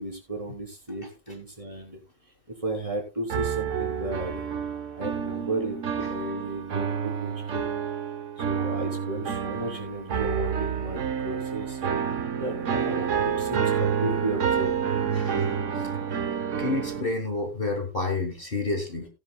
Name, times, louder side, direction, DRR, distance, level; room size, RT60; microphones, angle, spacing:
voice 1, 0.0-2.0 2.6-4.4 4.9-7.6 8.4-11.8 12.3-14.7, right 1 dB, 25° right, 0 dB, 3.5 m, -34 dB
sound 1, 3.3-17.0, right 7 dB, 70° right, 1.3 m, -28 dB
voice 2, 15.1-15.5 16.6-19.1, left 3 dB, 45° left, 6 dB, 1.6 m, -29 dB
17.0 x 10.0 x 2.3 m, 0.27 s
omnidirectional pair, 1.3 m